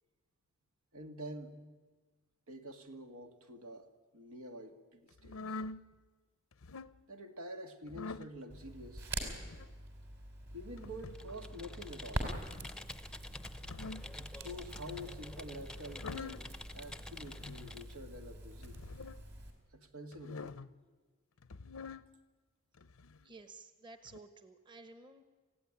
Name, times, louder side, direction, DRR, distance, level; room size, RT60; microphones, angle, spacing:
voice 1, 0.9-1.6 2.5-5.6 7.1-9.1 10.5-12.3 14.2-18.8 19.7-20.6, equal, 90° right, 6 dB, 2.0 m, -48 dB
sound 1, 5.2-5.8 6.5-7.0 7.9-8.3 9.3-9.7 10.8-11.3 12.4-12.8 13.5-14.1 14.8-15.2 15.8-16.5 17.3-17.8 18.6-19.2 20.1-20.7 21.4-22.1 22.8-23.3 24.1-24.2, left 3 dB, 85° left, 0.7 m, -46 dB
Crackle, 8.5-19.5, right 1 dB, 50° right, 4.2 m, -45 dB
Computer keyboard, 11.1-17.9, left 2 dB, 5° left, 0.7 m, -50 dB
voice 2, 23.2-25.2, right 3 dB, 20° right, 9 dB, 1.1 m, -53 dB
27.5 x 16.5 x 9.8 m, 1.4 s
head